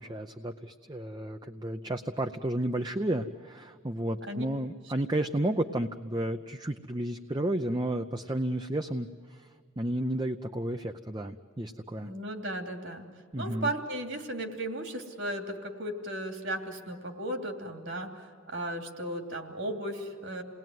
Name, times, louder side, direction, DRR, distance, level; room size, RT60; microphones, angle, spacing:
voice 1, 0.0-9.5 9.8-12.1 13.3-13.7, right 1 dB, 20° right, 7 dB, 0.6 m, -32 dB
voice 2, 12.0-13.1 13.4-20.4, right 1 dB, 60° right, 4 dB, 3.0 m, -35 dB
29.0 x 20.0 x 9.4 m, 2.1 s
head